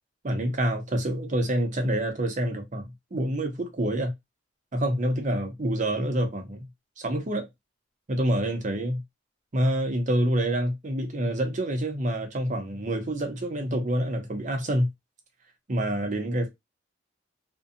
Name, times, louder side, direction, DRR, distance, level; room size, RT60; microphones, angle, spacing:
voice 1, 0.2-4.1 4.7-6.7 7.0-7.5 8.1-9.0 9.5-14.9 15.7-16.5, right 1 dB, 40° right, 0.7 m, -27 dB
2.6 x 2.2 x 2.5 m
head